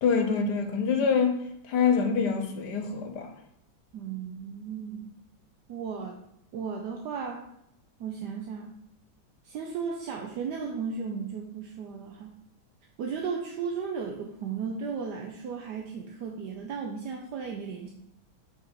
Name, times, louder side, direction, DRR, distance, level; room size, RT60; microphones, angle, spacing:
voice 1, 0.0-3.3, left 5 dB, 75° left, 1.3 m, -25 dB
voice 2, 3.9-5.1 5.7-6.2 6.5-7.5 8.0-8.7 9.4-12.3 13.0-17.9, right 6 dB, 75° right, 1.2 m, -35 dB
5.4 x 4.0 x 4.4 m
omnidirectional pair, 1.9 m